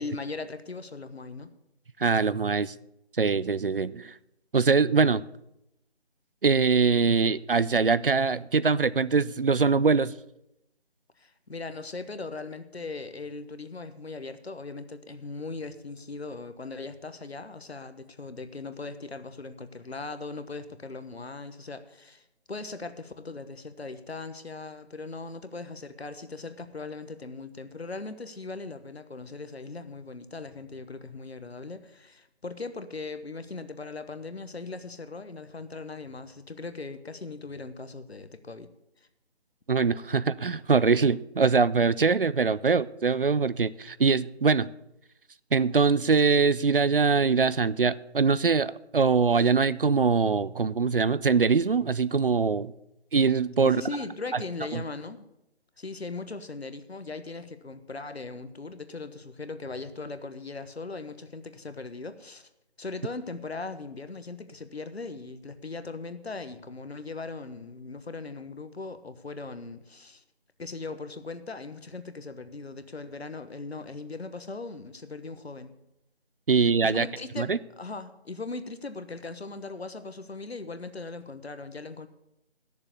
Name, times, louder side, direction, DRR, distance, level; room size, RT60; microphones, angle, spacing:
voice 1, 0.0-1.5 11.2-38.7 53.6-55.3 55.8-62.5 62.8-70.2 70.6-75.7 76.8-82.1, left 3 dB, 70° left, 1.2 m, -39 dB
voice 2, 2.0-2.7 3.2-4.1 4.5-5.2 6.4-10.1 39.7-44.7 45.5-52.7 53.1-53.8 54.7-54.8 76.5-77.1 77.4-77.6, right 5 dB, 55° right, 0.4 m, -23 dB
11.0 x 6.9 x 8.3 m
figure-of-eight pair, 160°, 33 cm